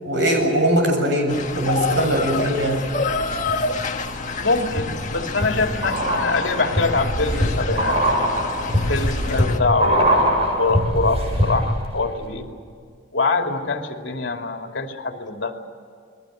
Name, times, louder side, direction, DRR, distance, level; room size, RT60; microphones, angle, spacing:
voice 1, 0.0-2.9, right 1 dB, 70° right, 3 dB, 7.8 m, -21 dB
sound 1, 1.3-9.6, left 3 dB, 40° left, 1.6 m, -28 dB
sound 2, 2.8-3.5 4.0-11.9 12.1-12.2, equal, 35° right, 7.5 m, -23 dB
voice 2, 4.4-8.0 8.9-10.1 10.6-12.5 13.1-15.6, left 3 dB, 75° left, 3 dB, 2.7 m, -24 dB
29.5 x 22.0 x 6.5 m, 2.2 s
head